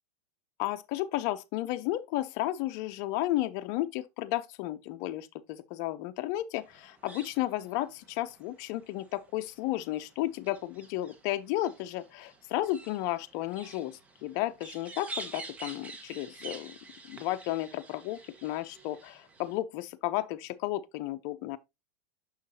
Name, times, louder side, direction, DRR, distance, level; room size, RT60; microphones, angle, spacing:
voice 1, 0.6-16.8 17.1-21.6, left 15 dB, 50° left, 0.6 m, -33 dB
sound 1, 6.5-19.6, right 3 dB, 15° right, 1.1 m, -49 dB
6.4 x 5.7 x 2.7 m
supercardioid pair, 130°, 8 cm